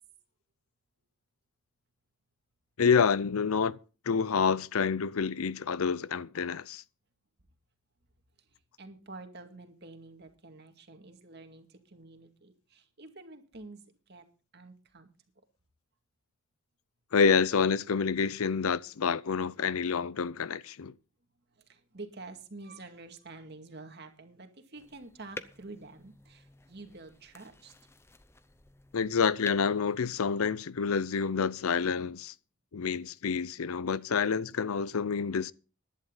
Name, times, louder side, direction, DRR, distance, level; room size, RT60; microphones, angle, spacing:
voice 1, 2.8-3.8 4.1-6.8 17.1-20.9 28.9-32.3 32.7-35.5, left 5 dB, 80° left, 0.6 m, -28 dB
voice 2, 8.8-13.8 14.1-14.2 14.5-15.1 21.7-27.7, right 3 dB, 50° right, 2.2 m, -48 dB
sound 1, 24.7-30.6, left 2 dB, 10° left, 0.6 m, -50 dB
15.5 x 11.0 x 3.9 m
head